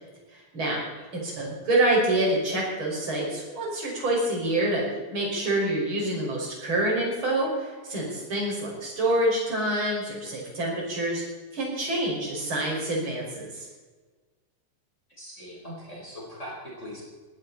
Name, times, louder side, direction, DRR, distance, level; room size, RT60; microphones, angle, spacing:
voice 1, 0.3-0.8 1.1-4.8 5.1-11.2 11.5-13.7, right 1 dB, 40° right, -3 dB, 6.3 m, -27 dB
voice 2, 15.2-17.0, equal, 20° left, -4 dB, 4.8 m, -40 dB
19.5 x 16.5 x 4.3 m, 1.4 s
omnidirectional pair, 3.5 m